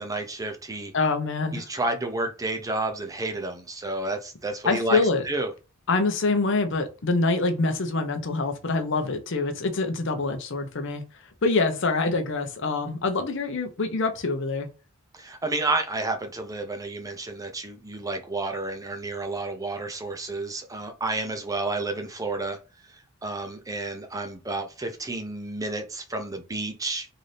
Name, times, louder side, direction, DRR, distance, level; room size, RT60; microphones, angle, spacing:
voice 1, 0.0-0.9 1.5-5.0 5.2-5.5 15.1-22.6 23.2-27.1, right 2 dB, 15° right, 5 dB, 0.6 m, -30 dB
voice 2, 0.9-1.6 4.6-5.2 5.9-11.0 11.4-14.7, left 3 dB, 65° left, 7 dB, 0.7 m, -25 dB
3.9 x 2.7 x 3.3 m, 0.31 s
head